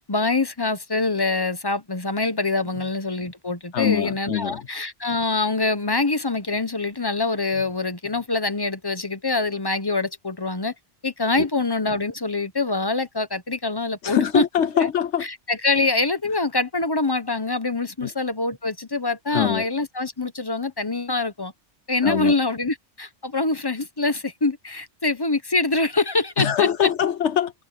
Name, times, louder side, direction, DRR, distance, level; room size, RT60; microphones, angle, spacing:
voice 1, 0.0-10.7 11.0-14.4 14.8-14.9 15.2-21.5 21.9-26.9, left 3 dB, 20° left, 1.0 m, -25 dB
voice 2, 3.7-4.6 11.4-11.5 14.0-15.3 18.0-18.1 19.3-19.7 22.0-22.3 26.4-27.5, left 9 dB, 75° left, 1.1 m, -23 dB
omnidirectional pair, 1.2 m